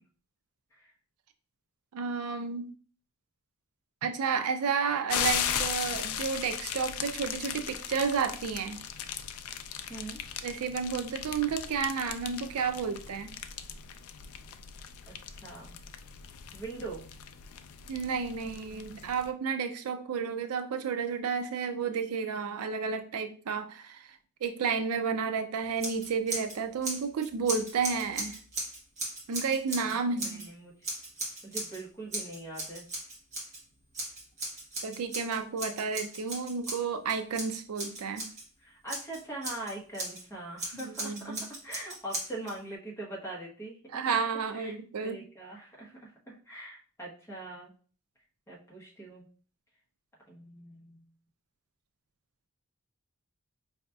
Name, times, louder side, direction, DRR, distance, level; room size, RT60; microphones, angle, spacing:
voice 1, 1.9-2.7 4.0-8.8 10.4-13.3 17.9-24.1 24.4-28.4 29.3-30.4 34.8-38.3 40.7-41.4 43.9-45.2, right 5 dB, 85° right, 8 dB, 0.4 m, -31 dB
sound 1, 5.1-19.3, left 8 dB, 75° left, 0.4 m, -37 dB
voice 2, 9.9-10.2 15.1-15.8 16.5-17.1 29.7-30.7 31.4-32.8 38.6-41.3 41.6-43.8 44.5-44.8 45.0-47.7 48.5-49.3 50.3-51.1, right 2 dB, 10° left, -4 dB, 1.0 m, -42 dB
Scissors, 25.8-26.6 26.8-30.5 30.8-31.8 32.1-33.6 33.9-38.4 38.9-40.2 40.6-42.5, right 2 dB, 30° right, 1.0 m, -37 dB
4.7 x 2.8 x 2.3 m, 0.41 s
head